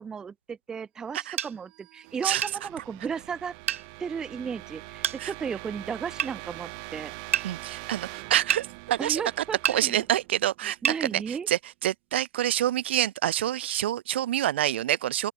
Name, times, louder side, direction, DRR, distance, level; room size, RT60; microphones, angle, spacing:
voice 1, 0.0-3.5 4.0-7.1 9.0-10.0 10.8-11.5, right 6 dB, 10° right, 0.6 m, -34 dB
sound 1, 1.3-11.1, right 32 dB, 35° right, 4.2 m, -44 dB
sound 2, 1.4-1.5 2.4-2.6 3.7-3.9 5.0-5.2 6.2-6.3 7.3-7.5 8.5-8.7 9.6-9.8 10.8-11.0, right 9 dB, 70° right, 1.1 m, -27 dB
voice 2, 7.4-9.2 9.6-15.3, right 12 dB, 50° right, 0.8 m, -27 dB
open air
hypercardioid pair, 160°, 8 cm